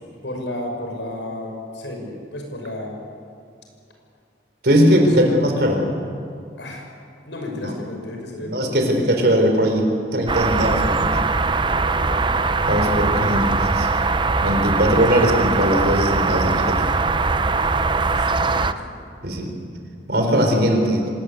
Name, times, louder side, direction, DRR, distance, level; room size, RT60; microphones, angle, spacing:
voice 1, 0.2-3.0 4.9-5.3 6.6-6.9 7.3-8.6 11.6-12.3 17.4-19.0, left 1 dB, 80° left, 2 dB, 6.3 m, -33 dB
voice 2, 4.6-5.8 7.6-7.7 8.4-11.2 12.6-14.0 14.4-16.8 19.2-19.5 20.1-21.1, equal, 60° right, 3 dB, 4.4 m, -19 dB
sound 1, 10.3-18.7, right 3 dB, 25° right, 0.7 m, -21 dB
25.5 x 20.0 x 8.6 m, 2.3 s
head